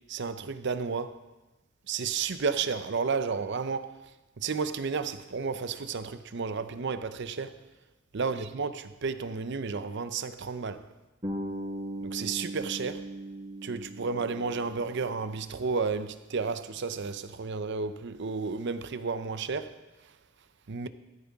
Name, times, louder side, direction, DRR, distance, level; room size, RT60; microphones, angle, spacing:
voice 1, 0.1-1.2 1.9-3.9 4.4-7.5 8.1-8.7 9.0-10.8 12.0-13.0 13.6-19.7 20.7-20.9, right 5 dB, 55° right, 0.6 m, -32 dB
Bass guitar, 11.2-15.3, right 1 dB, 25° right, 3.9 m, -38 dB
13.5 x 13.5 x 3.6 m
head